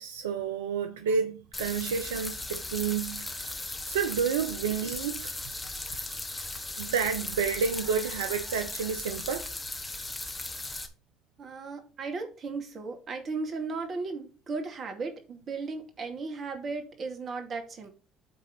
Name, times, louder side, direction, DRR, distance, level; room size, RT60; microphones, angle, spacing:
voice 1, 0.0-5.3 6.8-9.5, right 6 dB, 90° right, 0.7 m, -30 dB
sound 1, 1.5-10.9, left 2 dB, 20° left, 1.7 m, -37 dB
voice 2, 11.4-17.9, right 4 dB, 50° right, 2.4 m, -36 dB
8.9 x 3.8 x 5.8 m
hypercardioid pair, 60°, 0 cm